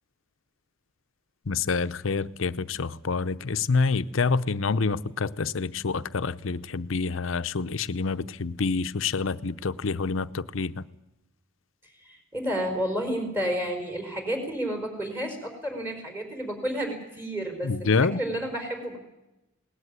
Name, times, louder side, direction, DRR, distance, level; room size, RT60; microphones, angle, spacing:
voice 1, 1.5-10.8 17.6-18.2, left 4 dB, 75° left, 0.7 m, -27 dB
voice 2, 12.0-19.0, equal, 10° right, 4.7 m, -31 dB
21.0 x 18.5 x 9.6 m
head